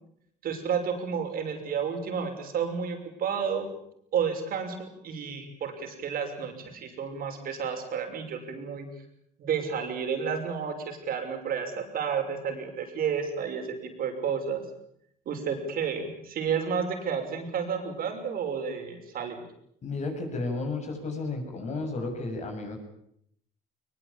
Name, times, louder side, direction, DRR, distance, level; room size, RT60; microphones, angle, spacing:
voice 1, 0.4-3.7 4.1-8.9 9.4-14.6 15.3-19.4, right 6 dB, 60° right, 5 dB, 6.1 m, -31 dB
voice 2, 19.8-22.8, left 3 dB, 40° left, 4 dB, 7.7 m, -33 dB
22.0 x 21.5 x 8.8 m, 0.72 s
cardioid pair, 110°, 17 cm